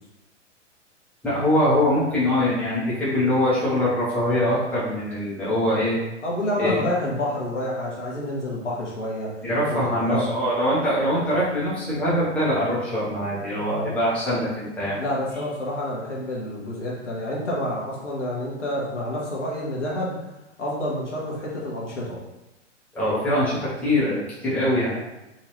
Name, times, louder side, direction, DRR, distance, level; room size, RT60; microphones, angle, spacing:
voice 1, 1.2-6.0 6.6-6.8 9.4-15.0 22.9-25.0, left 1 dB, 5° left, -10 dB, 1.2 m, -23 dB
voice 2, 6.2-9.3 9.7-10.3 15.0-20.2 20.6-22.2, left 1 dB, 75° left, -4 dB, 1.3 m, -28 dB
3.8 x 2.8 x 3.2 m, 0.97 s
figure-of-eight pair, 110°, 36 cm